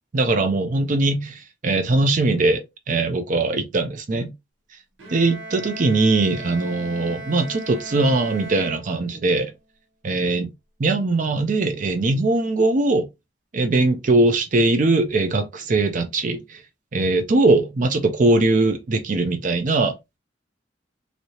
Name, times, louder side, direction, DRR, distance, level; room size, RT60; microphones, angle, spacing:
voice 1, 0.1-2.6 2.9-4.3 5.1-9.5 10.0-10.5 10.8-13.1 13.5-16.6 16.9-20.2, right 2 dB, 40° right, 0.4 m, -21 dB
Bowed string instrument, 5.0-9.4, right 2 dB, 85° right, 1.0 m, -37 dB
3.1 x 2.7 x 2.7 m
head